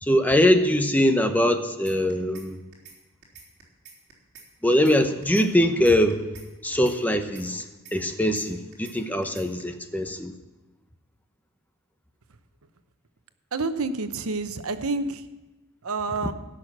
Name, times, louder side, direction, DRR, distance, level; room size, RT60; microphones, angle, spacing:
voice 1, 0.0-2.6 4.6-6.3 6.6-10.3, left 1 dB, 10° left, 7 dB, 0.8 m, -22 dB
sound 1, 1.9-2.5 2.7-3.0 3.2-4.5 4.7-5.0 5.2-6.5 6.7-7.0 7.2-8.5 8.7-9.0 9.2-9.6, right 6 dB, 50° right, 3.7 m, -47 dB
voice 2, 13.5-15.3 15.8-16.3, right 3 dB, 90° right, 10 dB, 0.9 m, -28 dB
16.5 x 6.3 x 8.7 m, 1.1 s
head